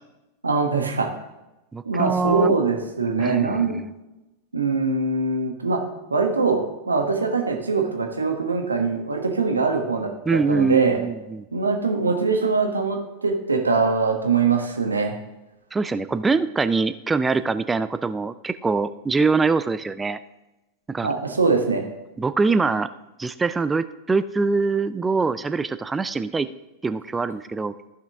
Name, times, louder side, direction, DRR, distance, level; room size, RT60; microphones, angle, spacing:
voice 1, 0.4-1.1 1.8-3.8 4.5-5.8 6.1-11.0 11.5-15.1 21.0-21.8, right 4 dB, 75° right, 3 dB, 1.2 m, -22 dB
voice 2, 1.7-2.5 3.2-3.9 10.3-11.5 15.7-20.2 20.9-21.1 22.2-22.9 23.2-26.5 26.8-27.7, right 4 dB, 15° right, 13 dB, 0.4 m, -23 dB
14.0 x 5.8 x 3.5 m, 0.99 s
figure-of-eight pair, 90°, 0 cm